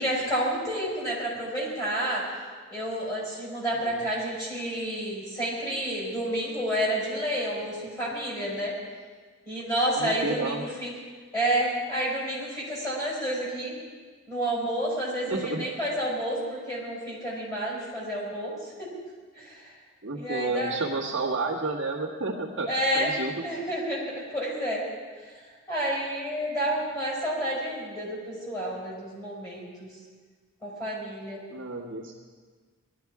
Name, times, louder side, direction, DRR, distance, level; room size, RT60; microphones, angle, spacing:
voice 1, 0.0-2.3 2.7-8.7 9.4-10.9 11.3-13.7 14.3-18.9 19.3-19.7 20.1-20.8 22.7-23.1 23.4-24.9 25.2-25.4 25.7-29.9 30.6-31.4, right 1 dB, 15° left, -5 dB, 4.8 m, -30 dB
voice 2, 10.0-10.6 15.3-15.6 20.0-23.4 31.5-32.1, right 3 dB, 55° right, -3 dB, 1.6 m, -31 dB
19.0 x 12.5 x 4.8 m, 1.5 s
head